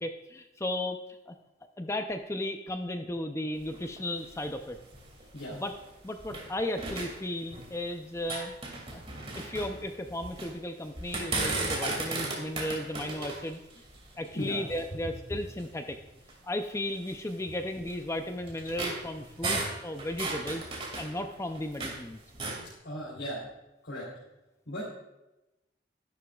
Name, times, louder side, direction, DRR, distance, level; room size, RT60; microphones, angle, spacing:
voice 1, 0.0-1.0 1.3-1.4 1.8-4.8 5.5-5.7 6.0-9.0 9.4-13.6 14.2-16.0 16.4-20.6 21.0-22.2, left 1 dB, 15° left, 6 dB, 0.5 m, -35 dB
sound 1, 3.5-6.5 6.8-7.9 8.1-10.5 10.9-15.0 15.6-15.7 16.2-16.3 17.1-22.0 22.3-22.7, right 2 dB, 30° right, 2.3 m, -36 dB
voice 2, 22.8-23.5 23.8-24.1 24.7-24.8, equal, 90° left, -7 dB, 3.1 m, -36 dB
12.5 x 11.0 x 2.4 m, 0.96 s
head